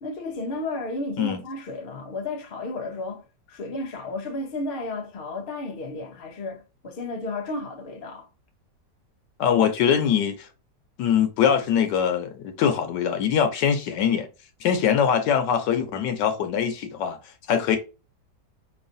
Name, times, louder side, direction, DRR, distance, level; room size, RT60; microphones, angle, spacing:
voice 1, 0.0-8.3, left 2 dB, 60° left, 0.6 m, -33 dB
voice 2, 9.4-10.5 11.0-14.3 14.6-17.2 17.5-17.8, left 8 dB, 80° left, 1.3 m, -22 dB
4.3 x 3.1 x 2.6 m
omnidirectional pair, 1.9 m